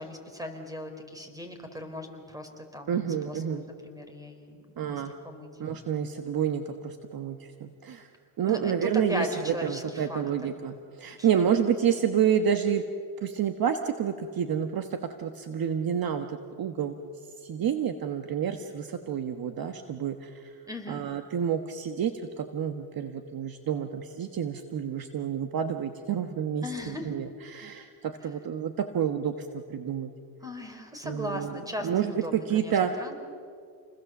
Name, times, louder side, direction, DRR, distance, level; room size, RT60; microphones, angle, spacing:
voice 1, 0.0-3.0 3.2-5.6 8.4-10.2 11.2-11.3 20.7-21.0 26.6-27.2 28.2-28.3 30.4-33.1, left 1 dB, 5° right, 7 dB, 4.1 m, -38 dB
voice 2, 2.9-3.6 4.8-5.1 5.6-8.1 8.4-9.3 9.6-12.8 13.2-17.0 17.4-20.5 20.9-26.7 27.1-30.1 31.0-32.9, right 8 dB, 45° right, 7 dB, 1.4 m, -29 dB
29.0 x 20.5 x 7.3 m, 2.2 s
cardioid pair, 95°, 48 cm